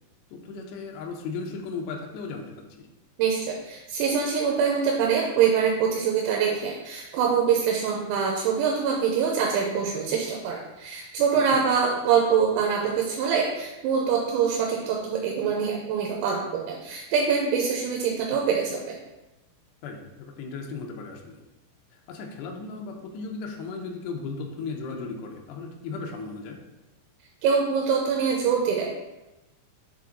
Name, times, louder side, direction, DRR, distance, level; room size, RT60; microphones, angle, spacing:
voice 1, 0.3-2.4 2.8-2.9 19.8-21.4 21.9-26.6, left 4 dB, 75° left, 1 dB, 2.7 m, -36 dB
voice 2, 3.2-19.0 27.4-28.9, right 6 dB, 85° right, -1 dB, 3.0 m, -24 dB
7.1 x 3.8 x 3.7 m, 0.98 s
omnidirectional pair, 5.2 m